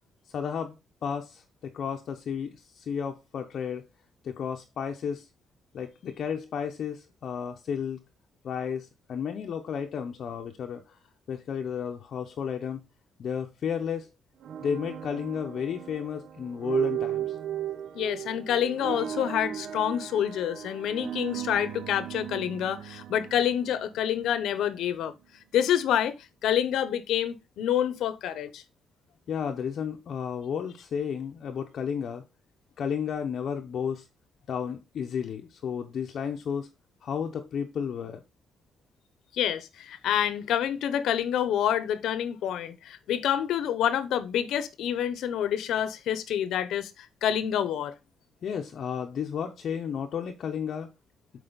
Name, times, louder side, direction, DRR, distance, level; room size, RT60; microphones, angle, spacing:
voice 1, 0.3-3.9 4.2-5.3 5.7-8.0 8.4-11.0 11.3-12.8 13.2-14.1 14.6-17.4 29.3-32.2 32.8-34.0 34.5-36.7 37.0-38.2 48.4-50.9, left 7 dB, 50° left, 0.7 m, -33 dB
sound 1, 14.4-24.5, right 11 dB, 60° right, 0.6 m, -36 dB
voice 2, 17.9-25.1 25.5-26.2 26.4-28.6 39.3-47.9, left 10 dB, 80° left, 0.8 m, -27 dB
7.9 x 4.8 x 3.9 m
cardioid pair, 175°, 0 cm